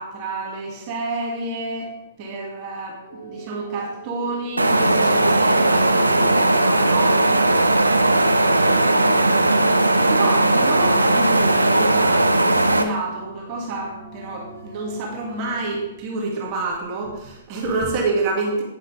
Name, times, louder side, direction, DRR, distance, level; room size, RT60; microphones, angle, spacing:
voice 1, 0.0-1.9 2.2-7.2 8.5-18.6, right 3 dB, 35° right, -1 dB, 2.5 m, -29 dB
sound 1, 3.1-15.9, right 3 dB, 80° left, 3.2 m, -43 dB
sound 2, 4.6-12.8, right 2 dB, 90° right, 0.9 m, -17 dB
10.0 x 9.6 x 3.5 m, 0.94 s
figure-of-eight pair, 120°, 0 cm